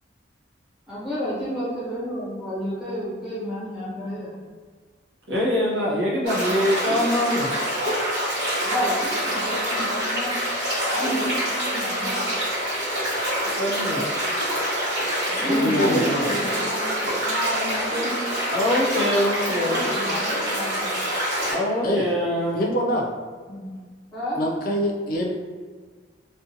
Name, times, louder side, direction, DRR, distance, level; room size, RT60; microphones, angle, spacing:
voice 1, 0.9-4.3 8.6-10.3 10.9-12.2 15.3-18.1 19.5-20.9 23.5-23.7 24.1-24.4, equal, 5° right, -11 dB, 1.0 m, -30 dB
voice 2, 5.3-7.5 13.6-14.0 15.4-16.0 18.5-19.8 21.5-22.6, left 1 dB, 75° right, -5 dB, 0.7 m, -24 dB
sound 1, 6.3-21.5, equal, 55° right, 1.1 m, -26 dB
voice 3, 15.6-16.3 21.8-22.1 22.5-23.1 24.4-25.3, equal, 50° left, -1 dB, 0.3 m, -24 dB
2.5 x 2.1 x 2.7 m, 1.5 s
head